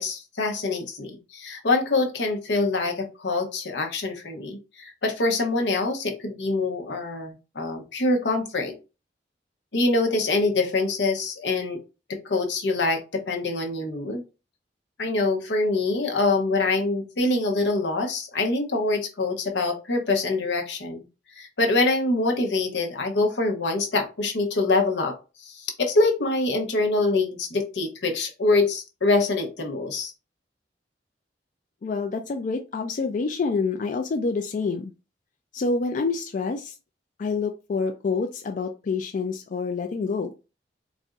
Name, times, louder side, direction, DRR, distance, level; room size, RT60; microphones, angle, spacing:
voice 1, 0.0-8.8 9.7-11.8 12.1-14.2 15.0-21.0 21.3-30.1, left 3 dB, 85° left, 3 dB, 0.9 m, -25 dB
voice 2, 31.8-34.9 35.5-36.7 37.2-40.3, left 4 dB, 45° left, 4 dB, 0.3 m, -27 dB
4.1 x 2.5 x 2.3 m, 0.30 s
head